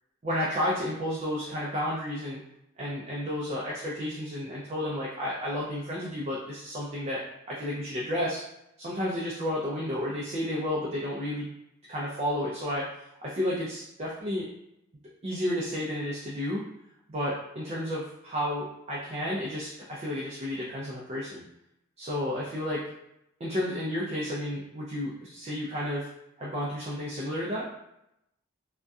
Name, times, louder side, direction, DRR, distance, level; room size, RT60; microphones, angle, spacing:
voice 1, 0.2-2.4 2.8-7.2 7.5-8.4 8.8-11.5 11.9-12.9 13.2-14.5 15.2-16.6 17.1-21.4 22.0-22.9 23.4-26.1 26.4-27.7, left 1 dB, 30° right, -5 dB, 0.3 m, -31 dB
2.6 x 2.1 x 2.3 m, 0.84 s
head